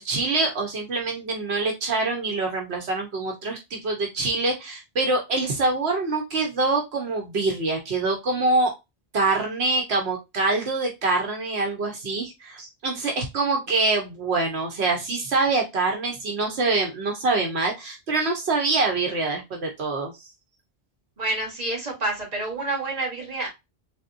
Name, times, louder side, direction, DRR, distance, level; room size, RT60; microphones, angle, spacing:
voice 1, 0.0-8.7 9.1-20.1, right 3 dB, 85° right, 2 dB, 1.3 m, -25 dB
voice 2, 21.2-23.5, right 2 dB, 40° right, -2 dB, 1.8 m, -28 dB
4.0 x 3.5 x 2.6 m, 0.22 s
omnidirectional pair, 1.1 m